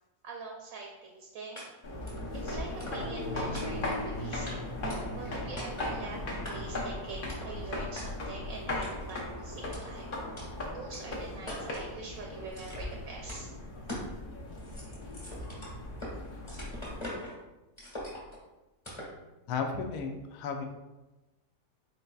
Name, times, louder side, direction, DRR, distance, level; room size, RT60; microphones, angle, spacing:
voice 1, 0.2-1.6 2.3-4.6 5.2-10.2 10.7-13.5, right 3 dB, 70° right, 0 dB, 0.9 m, -44 dB
sound 1, 1.6-1.7 2.1-2.3 2.8-3.2 3.5-4.0 4.5-4.6 4.9-5.3 5.6-6.0 6.4-6.8 7.3-7.5 8.0-8.1 8.8-9.2 9.7-9.8 10.4-10.5 10.9-11.0 11.5-11.9 12.5-13.0 13.3-13.4 13.9-14.1 14.5-16.1 16.5-17.4 17.8-18.4 18.8-19.2, left 1 dB, 20° left, 1.2 m, -42 dB
sound 2, 1.8-17.1, left 1 dB, 45° left, 0.7 m, -38 dB
voice 2, 19.5-20.7, left 5 dB, 75° left, 4 dB, 1.0 m, -34 dB
4.0 x 3.9 x 2.3 m, 1.1 s
omnidirectional pair, 1.7 m